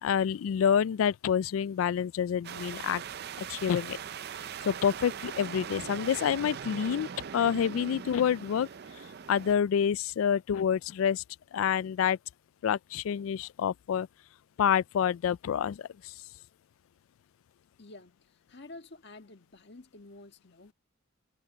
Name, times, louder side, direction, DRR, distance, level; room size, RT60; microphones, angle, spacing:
voice 1, 0.0-3.0 3.4-4.0 4.6-7.1 7.3-8.7 9.3-11.2 11.5-12.2 12.6-14.1 14.6-16.1, left 8 dB, 85° left, 0.3 m, -28 dB
sound 1, 2.4-9.5, right 7 dB, 50° right, 0.5 m, -41 dB
voice 2, 17.8-20.7, left 2 dB, 55° left, 1.6 m, -50 dB
head